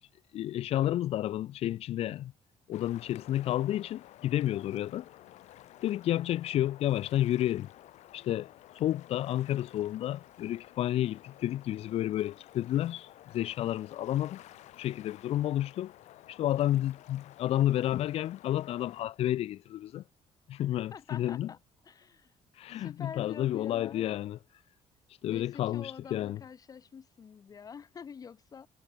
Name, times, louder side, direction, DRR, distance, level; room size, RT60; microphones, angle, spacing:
voice 1, 0.3-2.3 2.7-5.1 5.8-7.7 8.1-8.5 8.7-14.4 14.7-15.9 16.3-20.0 20.5-21.5 22.6-24.4 25.2-26.4, left 13 dB, 60° left, 0.7 m, -31 dB
sound 1, 2.7-19.0, left 14 dB, 80° left, 3.6 m, -53 dB
voice 2, 20.9-21.6 21.8-22.3 22.7-24.0 25.3-28.7, left 6 dB, 30° left, 2.1 m, -46 dB
cardioid pair, 160°, 12 cm